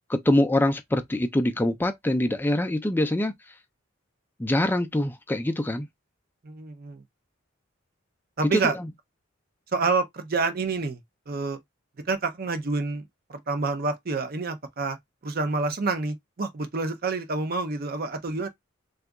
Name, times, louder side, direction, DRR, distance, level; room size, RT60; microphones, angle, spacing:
voice 1, 0.1-3.3 4.4-5.9 8.4-8.9, left 1 dB, 10° left, 0.4 m, -24 dB
voice 2, 6.4-7.0 8.4-8.8 9.7-11.0 11.3-11.6 12.1-13.0 13.5-15.0 15.2-18.5, right 3 dB, 50° right, 0.6 m, -28 dB
2.7 x 2.4 x 3.5 m
head